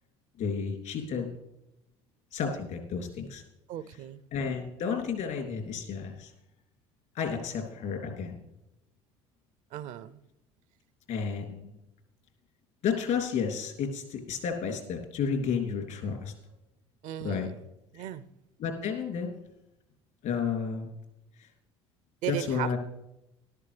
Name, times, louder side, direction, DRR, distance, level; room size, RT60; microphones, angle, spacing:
voice 1, 0.4-1.3 2.3-3.4 4.3-6.3 7.1-8.3 11.1-11.7 12.8-16.3 17.2-17.5 18.6-19.3 20.2-20.9 22.3-22.8, left 6 dB, 65° left, 2.8 m, -31 dB
voice 2, 3.7-4.2 9.7-10.2 17.0-17.5 17.9-18.2 22.2-22.8, right 11 dB, 60° right, 0.6 m, -36 dB
13.5 x 12.0 x 3.3 m
hypercardioid pair, 65°, 14 cm